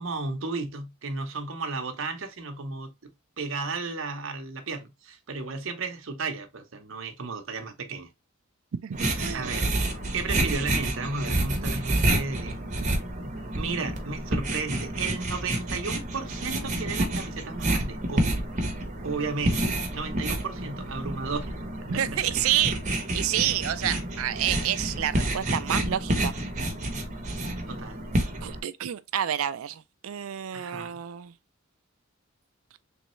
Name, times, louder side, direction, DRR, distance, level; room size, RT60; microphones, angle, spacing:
voice 1, 0.0-8.1 9.3-9.7 10.1-12.6 13.5-18.4 19.0-21.5 21.8-22.2 27.7-28.0 30.5-31.0, right 4 dB, 65° right, 0.8 m, -34 dB
voice 2, 8.8-9.6 21.9-22.8 23.1-26.3 28.4-31.3, right 11 dB, 80° right, 0.4 m, -29 dB
sound 1, 8.9-28.6, right 1 dB, 35° right, 0.9 m, -29 dB
3.5 x 3.1 x 3.0 m
head